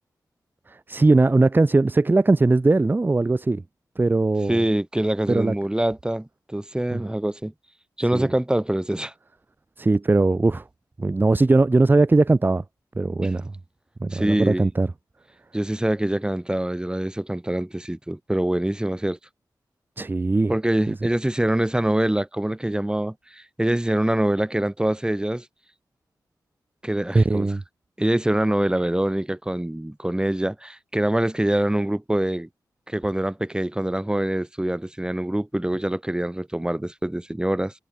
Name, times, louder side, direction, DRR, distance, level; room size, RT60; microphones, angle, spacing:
voice 1, 0.7-3.6 4.0-4.6 5.3-5.5 6.9-7.0 8.1-8.3 9.8-10.6 11.0-12.6 13.0-13.5 14.0-14.9 20.0-20.5 20.9-21.0 27.1-27.6, right 3 dB, 25° right, 0.8 m, -20 dB
voice 2, 4.5-7.5 8.0-9.1 13.2-13.3 14.1-14.7 15.5-19.2 20.5-25.5 26.8-27.5 28.0-32.5 32.9-37.7, right 1 dB, 10° right, 2.1 m, -24 dB
cardioid pair, 60°, 7 cm